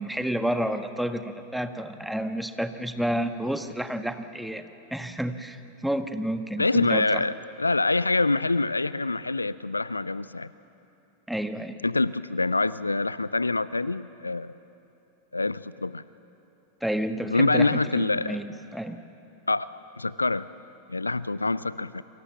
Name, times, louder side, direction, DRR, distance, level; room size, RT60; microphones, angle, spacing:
voice 1, 0.0-7.2 11.3-11.8 16.8-19.0, right 1 dB, ahead, 8 dB, 1.5 m, -30 dB
voice 2, 6.6-10.5 11.8-14.5 15.3-16.0 17.3-18.4 19.5-19.7 20.0-20.5 20.9-22.0, left 3 dB, 80° left, 18 dB, 0.5 m, -25 dB
29.0 x 24.5 x 7.4 m, 2.8 s
figure-of-eight pair, 90°, 0 cm